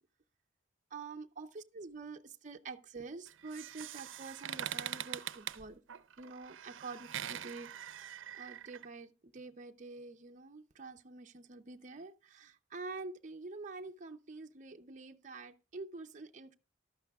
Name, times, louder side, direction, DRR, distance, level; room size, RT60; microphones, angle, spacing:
voice 1, 0.9-5.8 6.2-8.1 8.3-16.5, right 3 dB, 40° right, 0.6 m, -47 dB
sound 1, 3.3-8.8, right 10 dB, 80° right, 0.5 m, -43 dB
14.5 x 12.0 x 2.3 m
head